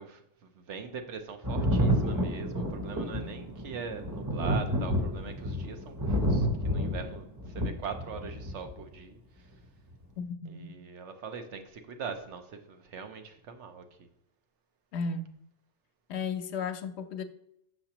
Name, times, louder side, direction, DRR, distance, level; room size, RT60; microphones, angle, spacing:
voice 1, 0.0-9.2 10.5-14.1, right 6 dB, 90° right, 1.1 m, -42 dB
Thunder, 1.4-8.8 9.9-10.0, equal, 20° right, 0.6 m, -29 dB
voice 2, 10.2-10.8 14.9-15.3 16.1-17.2, left 5 dB, 75° left, 0.8 m, -34 dB
6.6 x 6.2 x 2.9 m
omnidirectional pair, 1.2 m